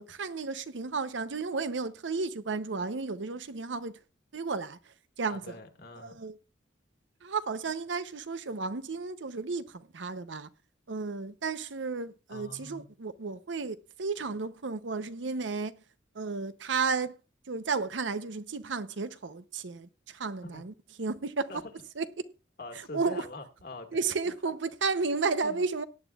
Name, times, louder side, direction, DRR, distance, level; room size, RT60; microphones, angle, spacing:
voice 1, 0.0-4.0 4.3-5.4 6.0-6.4 7.2-10.5 10.9-15.7 16.1-17.2 17.5-20.7 21.0-21.5 22.0-22.1 22.9-23.3 23.9-25.8, right 4 dB, 75° right, 0.7 m, -33 dB
voice 2, 5.3-6.2 12.3-12.9 20.4-20.6 21.5-21.6 22.6-24.0 25.4-25.6, left 2 dB, 55° left, 1.8 m, -44 dB
18.0 x 9.2 x 2.4 m
head